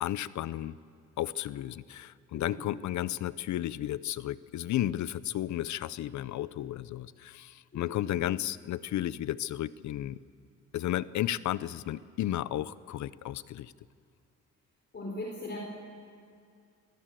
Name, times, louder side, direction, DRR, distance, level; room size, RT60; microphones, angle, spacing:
voice 1, 0.0-0.8 1.2-10.2 10.7-13.7, left 13 dB, 70° left, 18 dB, 0.7 m, -33 dB
voice 2, 2.3-2.7 7.7-8.2 14.9-15.6, left 2 dB, 35° left, 0 dB, 4.0 m, -40 dB
23.5 x 18.0 x 7.7 m, 2.4 s
cardioid pair, 90°, 30 cm